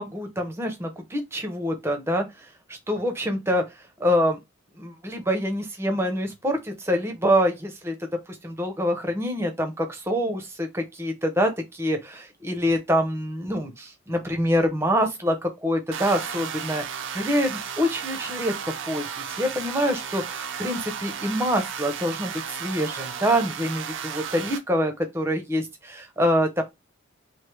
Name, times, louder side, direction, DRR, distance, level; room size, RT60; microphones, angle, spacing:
voice 1, 0.0-3.6 4.0-4.4 4.8-8.0 8.3-26.6, equal, 10° right, 0.7 m, -26 dB
sound 1, 15.9-24.6, right 7 dB, 65° right, 0.5 m, -34 dB
3.2 x 2.7 x 4.5 m
head